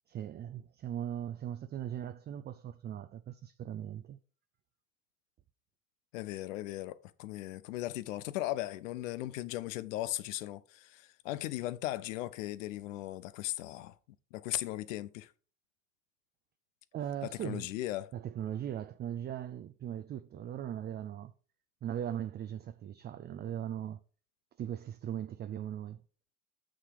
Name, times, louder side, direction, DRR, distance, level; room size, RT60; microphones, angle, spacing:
voice 1, 0.1-4.2 16.9-17.7 18.1-21.3 21.8-24.0 24.6-26.0, right 10 dB, 25° right, 0.4 m, -39 dB
voice 2, 6.1-13.9 14.3-15.3 17.2-18.1, left 15 dB, 75° left, 0.7 m, -37 dB
6.3 x 6.2 x 4.8 m
hypercardioid pair, 85°, 39 cm